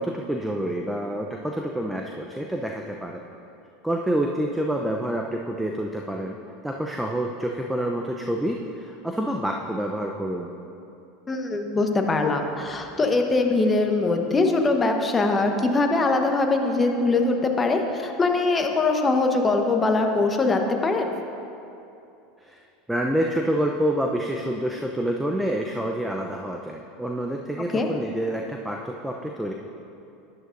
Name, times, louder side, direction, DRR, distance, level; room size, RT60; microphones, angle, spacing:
voice 1, 0.0-3.2 3.8-6.4 6.6-10.5 22.4-22.6 22.9-29.5, right 1 dB, 5° right, 1 dB, 0.7 m, -27 dB
voice 2, 11.3-21.1 27.7-27.9, left 3 dB, 20° left, 3 dB, 1.1 m, -22 dB
12.5 x 10.5 x 2.6 m, 2.8 s
hypercardioid pair, 85°, 0 cm